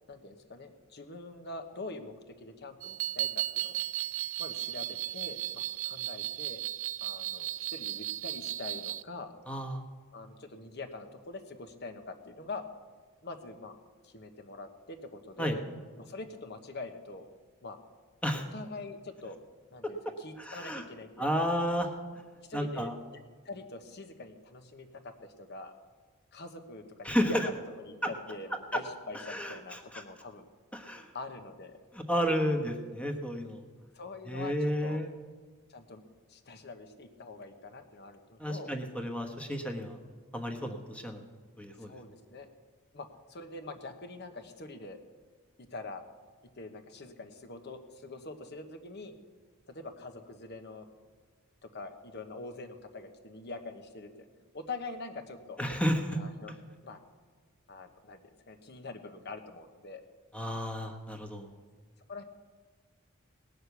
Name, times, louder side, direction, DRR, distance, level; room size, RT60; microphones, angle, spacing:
voice 1, 0.1-3.8 4.4-6.6 7.0-9.3 10.1-12.6 13.2-13.7 14.0-15.6 16.0-17.3 17.6-17.8 18.3-19.4 19.7-21.5 22.5-23.2 23.4-25.7 26.3-30.4 31.1-31.8 33.9-35.0 35.7-36.0 36.3-38.7 41.8-42.5 42.9-45.0 45.6-46.0 46.6-49.1 49.7-50.9 51.6-54.3 54.5-55.6 56.1-56.6 56.8-57.0 57.7-58.2 58.5-60.0 62.1-62.2, left 3 dB, 50° left, 7 dB, 1.2 m, -44 dB
sound 1, 2.8-9.0, right 13 dB, 65° right, 0.4 m, -35 dB
voice 2, 9.5-9.8 15.4-15.6 18.2-18.4 20.4-20.8 21.2-21.9 22.5-22.9 27.0-27.5 28.0-28.1 29.3-30.0 30.7-31.1 31.9-33.6 34.3-35.1 38.4-40.0 40.3-41.2 41.6-41.9 55.6-56.2 60.3-61.5, equal, 5° left, 4 dB, 1.2 m, -32 dB
19.0 x 6.6 x 8.1 m, 1.5 s
head